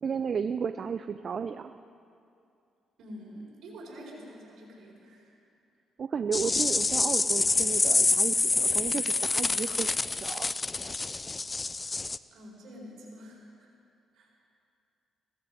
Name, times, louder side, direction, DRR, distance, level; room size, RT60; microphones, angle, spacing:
voice 1, 0.0-1.8 6.0-10.5 10.8-10.9, right 6 dB, 50° right, 10 dB, 0.4 m, -33 dB
voice 2, 3.0-5.3 12.3-13.7 14.1-14.3, equal, 70° right, -3 dB, 4.4 m, -46 dB
sound 1, 6.3-12.2, left 3 dB, 25° left, 0.3 m, -27 dB
16.5 x 14.0 x 5.1 m, 2.5 s
cardioid pair, 90°, 0 cm